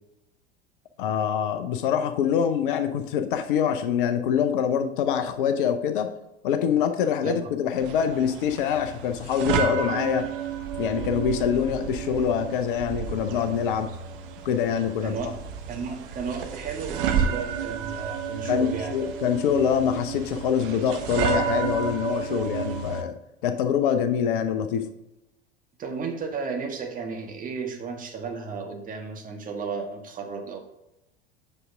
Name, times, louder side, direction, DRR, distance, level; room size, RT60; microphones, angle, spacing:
voice 1, 1.0-6.1 6.4-10.3 10.8-13.9 14.4-15.3 18.4-23.2 23.4-24.9, left 8 dB, 55° left, 9 dB, 0.7 m, -25 dB
sound 1, 7.8-23.0, right 7 dB, 55° right, 1.0 m, -31 dB
voice 2, 15.0-15.3 15.7-19.0 25.8-30.6, right 5 dB, 25° right, 2 dB, 1.4 m, -33 dB
7.9 x 6.1 x 3.5 m, 0.92 s
figure-of-eight pair, 80°, 32 cm